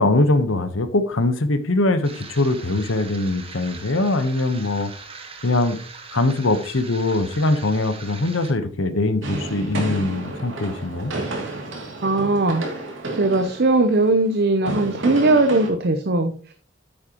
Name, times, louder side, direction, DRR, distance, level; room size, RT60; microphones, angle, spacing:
voice 1, 0.0-4.9 5.4-5.8 6.1-11.1, left 2 dB, 75° left, 10 dB, 1.0 m, -22 dB
sound 1, 2.0-8.5, right 4 dB, 30° right, 1.3 m, -41 dB
sound 2, 9.2-15.7, right 2 dB, 70° right, 2.6 m, -31 dB
voice 2, 12.0-12.6 13.1-16.3, right 2 dB, 50° right, 7 dB, 0.7 m, -19 dB
8.9 x 8.7 x 3.0 m, 0.40 s
head